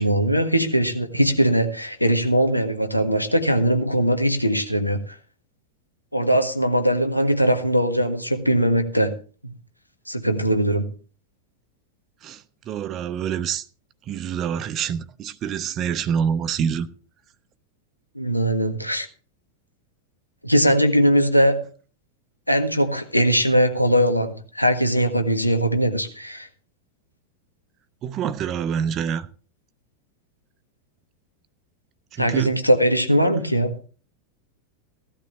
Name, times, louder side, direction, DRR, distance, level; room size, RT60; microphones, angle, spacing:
voice 1, 0.0-5.2 6.1-9.1 9.4-9.5 10.1-10.8 18.1-19.1 20.4-21.6 22.5-26.5 32.2-33.8, equal, 90° left, 1.6 m, -20 dB
voice 2, 12.7-13.6 14.1-16.9 28.0-29.3 32.2-32.6, right 8 dB, 30° right, 1.0 m, -26 dB
16.5 x 12.5 x 3.2 m
figure-of-eight pair, 90°, 0 cm